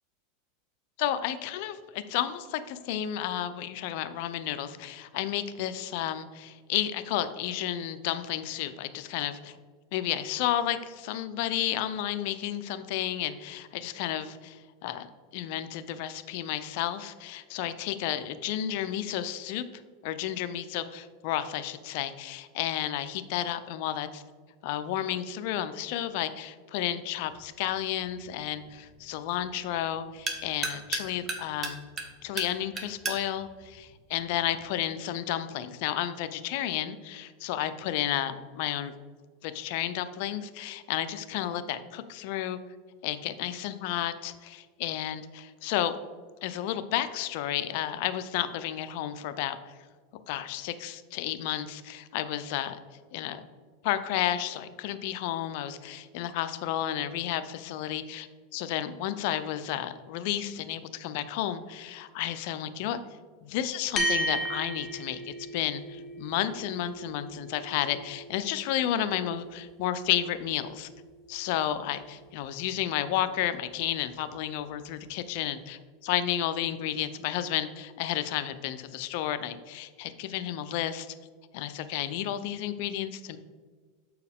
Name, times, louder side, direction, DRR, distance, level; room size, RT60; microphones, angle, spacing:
voice 1, 1.0-9.6 9.9-19.7 20.0-24.2 24.6-31.8 32.2-38.9 39.4-42.6 43.0-46.0 46.4-49.6 50.3-52.8 53.1-53.4 53.8-63.0 63.4-70.9 71.3-81.1 81.5-83.4, left 11 dB, 60° left, 12 dB, 0.4 m, -32 dB
sound 1, 27.2-34.8, right 3 dB, 25° right, 0.9 m, -39 dB
sound 2, 64.0-72.6, right 1 dB, 25° left, 0.9 m, -37 dB
7.1 x 4.6 x 3.5 m, 1.5 s
supercardioid pair, 130°, 0 cm